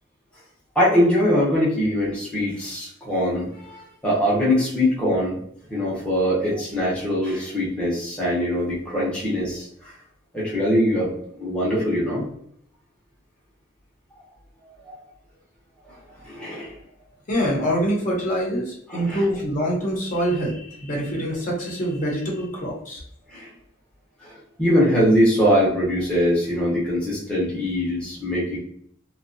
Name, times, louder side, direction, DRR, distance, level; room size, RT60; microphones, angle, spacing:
voice 1, 0.7-5.4 5.7-9.7 10.3-12.2 14.9-15.0 16.2-16.7 18.9-19.2 23.3-23.5 24.2-28.6, equal, 5° left, -7 dB, 0.7 m, -22 dB
voice 2, 17.3-23.0, equal, 40° left, -3 dB, 0.8 m, -25 dB
2.7 x 2.2 x 2.5 m, 0.67 s
head